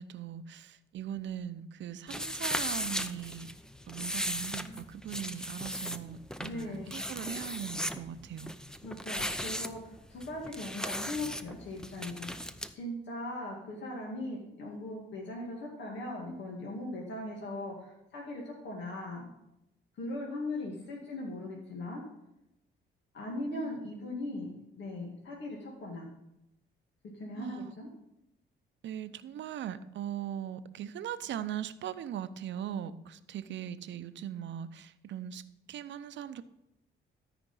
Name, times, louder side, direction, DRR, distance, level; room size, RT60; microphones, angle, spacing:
voice 1, 0.0-3.5 3.9-8.5 23.5-23.9 27.3-27.7 28.8-35.4 35.7-36.4, right 10 dB, 65° right, 12 dB, 0.7 m, -40 dB
sound 1, 2.1-12.7, equal, 5° left, 0.6 m, -37 dB
voice 2, 6.4-7.0 8.8-12.3 12.7-19.3 20.0-22.0 23.1-24.5 24.8-26.1 27.2-27.9, left 2 dB, 65° left, -2 dB, 2.3 m, -39 dB
13.0 x 5.1 x 5.5 m, 0.86 s
cardioid pair, 90°, 20 cm